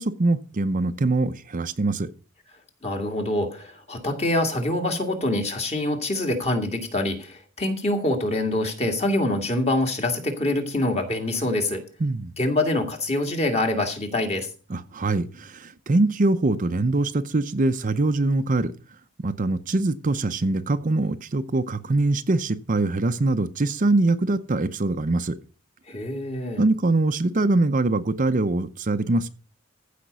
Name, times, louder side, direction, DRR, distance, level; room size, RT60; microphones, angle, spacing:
voice 1, 0.0-2.1 12.0-12.3 14.7-18.7 19.2-25.4 26.6-29.3, right 2 dB, 35° right, 0.6 m, -23 dB
voice 2, 2.8-11.8 12.4-14.5 25.9-26.6, left 1 dB, 30° left, 2.1 m, -25 dB
15.0 x 5.1 x 6.8 m
head